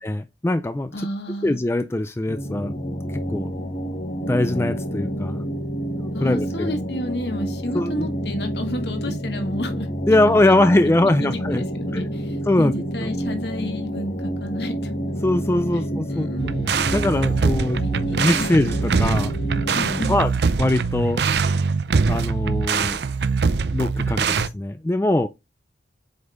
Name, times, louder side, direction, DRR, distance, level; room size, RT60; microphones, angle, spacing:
voice 1, 0.0-0.9 1.4-2.7 3.3-3.5 4.3-5.4 6.0-6.7 7.7-7.9 10.1-11.6 11.9-12.1 12.5-12.7 13.0-13.1 15.2-16.3 16.9-17.8 18.2-19.3 20.1-20.3 20.6-21.2 22.1-23.0 23.7-25.3, left 1 dB, 15° left, 0.3 m, -21 dB
voice 2, 0.9-1.6 3.3-3.7 6.1-10.6 11.0-14.9 15.7-16.5 17.8-18.6 19.7-20.2, left 1 dB, 65° left, 1.8 m, -31 dB
sound 1, 2.3-20.0, equal, 40° left, 1.3 m, -29 dB
sound 2, 16.4-24.5, right 5 dB, 65° right, 0.5 m, -23 dB
7.8 x 5.3 x 2.5 m
head